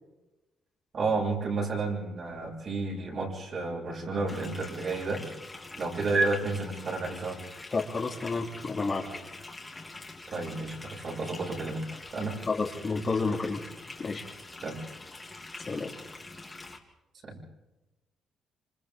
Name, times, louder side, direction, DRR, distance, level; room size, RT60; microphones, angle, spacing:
voice 1, 0.9-5.2 5.8-7.4 10.3-12.4 14.6-14.8 17.2-17.4, right 3 dB, 50° right, -1 dB, 7.0 m, -31 dB
sound 1, 4.3-16.8, left 2 dB, 20° left, 3.1 m, -45 dB
voice 2, 7.7-9.0 12.5-13.7 14.0-14.3 15.7-15.9, left 4 dB, 35° left, 1 dB, 3.0 m, -30 dB
27.0 x 26.5 x 3.7 m, 1.0 s
cardioid pair, 90°, 0 cm